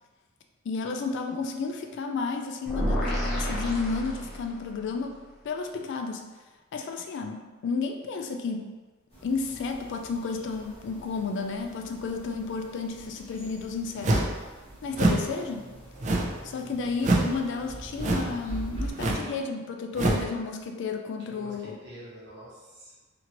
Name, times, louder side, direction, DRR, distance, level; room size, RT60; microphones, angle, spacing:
voice 1, 0.6-5.2 5.4-6.2 6.7-8.7 9.2-14.2 14.8-15.7 16.4-21.8, left 4 dB, 55° left, 4 dB, 0.3 m, -32 dB
sound 1, 2.7-4.8, equal, ahead, 0.6 m, -29 dB
sound 2, 9.1-18.9, right 1 dB, 30° left, 1.1 m, -43 dB
sound 3, 14.0-14.4 14.9-15.3 16.0-16.4 17.0-17.3 18.0-18.4 18.9-19.3 19.9-20.3, right 2 dB, 35° right, 0.4 m, -25 dB
voice 2, 21.3-22.9, equal, 55° right, -7 dB, 1.0 m, -47 dB
2.9 x 2.5 x 2.9 m, 1.3 s
head